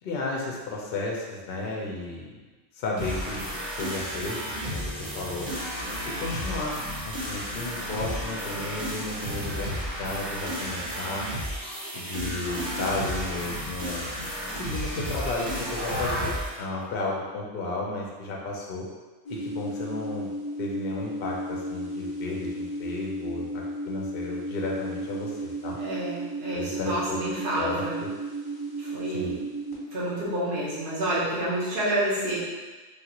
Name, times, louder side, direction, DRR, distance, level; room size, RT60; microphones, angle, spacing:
voice 1, 0.0-2.4 2.7-3.4 3.7-5.5 6.0-11.3 11.9-14.2 14.5-18.9 19.3-20.3 20.6-25.8 26.5-27.2 27.6-28.1 29.1-29.4, left 2 dB, 65° left, -2 dB, 0.7 m, -33 dB
sound 1, 3.0-16.5, equal, 25° right, 0.8 m, -32 dB
sound 2, 19.2-29.7, right 1 dB, 25° left, 0.7 m, -34 dB
voice 2, 25.8-28.0 28.8-29.4 29.9-32.4, right 1 dB, 55° right, -7 dB, 1.1 m, -29 dB
3.3 x 2.4 x 2.9 m, 1.3 s
omnidirectional pair, 1.1 m